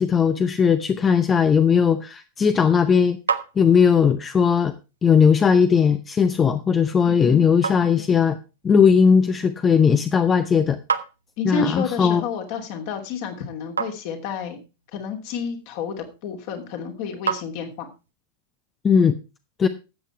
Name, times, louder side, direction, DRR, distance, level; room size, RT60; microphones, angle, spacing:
voice 1, 0.0-3.2 3.6-4.7 5.0-8.4 8.6-10.8 11.4-12.2 18.8-19.2 19.6-19.7, left 6 dB, 20° left, 11 dB, 0.8 m, -18 dB
sound 1, 2.3-18.1, right 6 dB, 75° right, 1.0 m, -36 dB
voice 2, 7.1-7.4 11.4-14.6 14.9-17.9, left 6 dB, 45° left, 4 dB, 2.9 m, -30 dB
13.0 x 8.4 x 4.5 m, 0.30 s
figure-of-eight pair, 90°, 0 cm